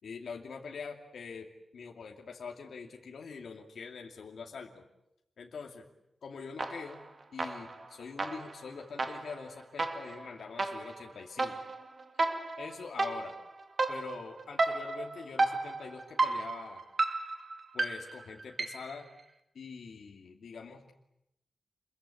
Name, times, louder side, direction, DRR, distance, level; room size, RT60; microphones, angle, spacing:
voice 1, 0.0-1.5 1.7-4.8 5.4-5.9 6.2-7.0 7.3-11.6 12.6-13.4 13.9-16.8 17.7-19.0 19.5-20.9, left 5 dB, 80° left, 1 dB, 2.6 m, -44 dB
sound 1, 6.6-7.1 7.4-19.0, right 3 dB, 40° right, 2.4 m, -34 dB
28.5 x 22.5 x 8.5 m, 0.83 s
wide cardioid pair, 145°, 0 cm